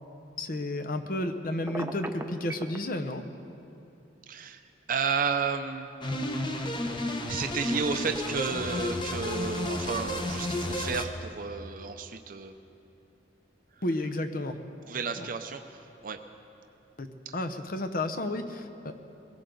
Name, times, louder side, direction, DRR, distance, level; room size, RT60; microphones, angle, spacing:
voice 1, 0.4-3.2 13.8-14.6 15.2-15.3 17.0-17.1 17.3-18.9, left 1 dB, 50° left, 7 dB, 0.9 m, -32 dB
Telephone, 1.7-2.8, right 1 dB, 15° right, 0.7 m, -36 dB
voice 2, 4.3-5.9 7.3-12.5 14.8-16.2 17.3-17.4, right 5 dB, 50° right, 6 dB, 0.6 m, -32 dB
sound 1, 6.0-11.0, left 1 dB, 25° left, 1.0 m, -32 dB
22.0 x 16.5 x 3.9 m, 2.8 s
head